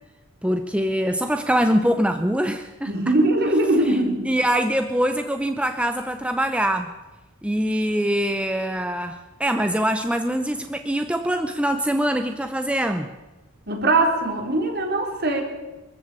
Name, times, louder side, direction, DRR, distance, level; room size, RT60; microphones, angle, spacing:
voice 1, 0.4-2.9 3.9-4.0 4.3-6.9 7.4-13.1, equal, 5° right, 8 dB, 0.7 m, -23 dB
voice 2, 2.9-4.3 13.7-15.4, right 2 dB, 50° right, 3 dB, 3.7 m, -21 dB
22.5 x 14.0 x 8.3 m, 1.1 s
head